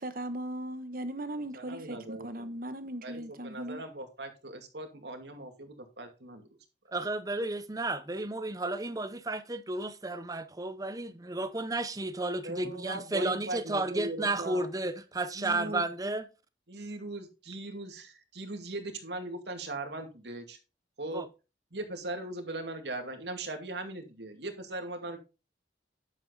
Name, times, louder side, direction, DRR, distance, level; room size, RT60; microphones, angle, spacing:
voice 1, 0.0-3.8, right 1 dB, 55° right, 1.2 m, -38 dB
voice 2, 1.5-2.5 3.0-6.6 12.4-14.7 15.3-15.8 16.7-20.6 21.0-21.2 21.7-25.2, right 2 dB, 70° right, 2.4 m, -39 dB
voice 3, 6.9-16.2 21.1-21.3, right 2 dB, 20° right, 0.7 m, -32 dB
11.0 x 7.5 x 4.1 m
head